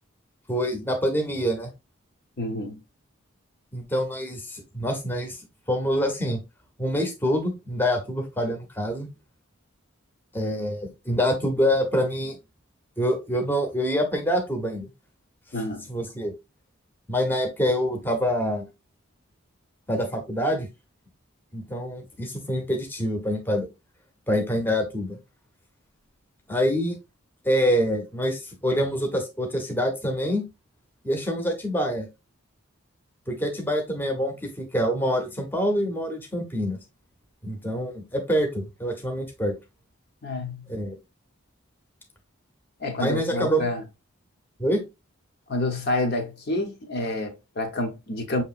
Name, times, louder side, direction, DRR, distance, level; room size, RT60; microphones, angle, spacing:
voice 1, 0.5-1.7 3.7-5.4 5.7-6.4 6.8-9.1 10.3-12.4 13.0-14.9 15.9-16.3 17.1-18.7 19.9-20.7 21.5-23.7 24.3-25.2 26.5-27.0 27.4-30.5 31.0-32.1 33.3-36.8 37.4-39.5 40.7-41.0 43.0-43.7 44.6-44.8, equal, 10° left, 0.7 m, -26 dB
voice 2, 2.4-2.8 15.5-15.9 40.2-40.6 42.8-43.8 45.5-48.4, left 2 dB, 50° left, 0.7 m, -28 dB
6.3 x 2.8 x 2.4 m
head